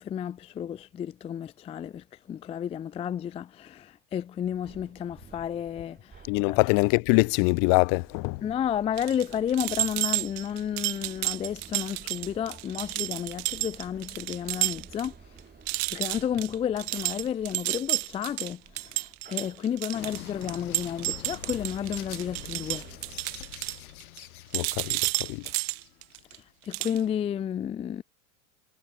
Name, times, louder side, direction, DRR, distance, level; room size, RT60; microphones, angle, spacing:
voice 1, 0.0-6.2 6.5-6.6 8.4-15.1 15.9-22.9 26.6-28.0, left 9 dB, 15° left, 0.4 m, -32 dB
sound 1, 4.4-23.2, right 6 dB, 20° right, 6.9 m, -53 dB
voice 2, 6.3-8.4 24.5-25.5, left 37 dB, 50° left, 0.7 m, -24 dB
sound 2, 9.0-15.1 15.4-15.5 15.7-24.2 24.5-26.4 26.7-27.0, right 40 dB or more, 55° right, 1.4 m, -31 dB
sound 3, 19.9-26.3, left 15 dB, 75° left, 2.3 m, -45 dB
hypercardioid pair, 95°, 43 cm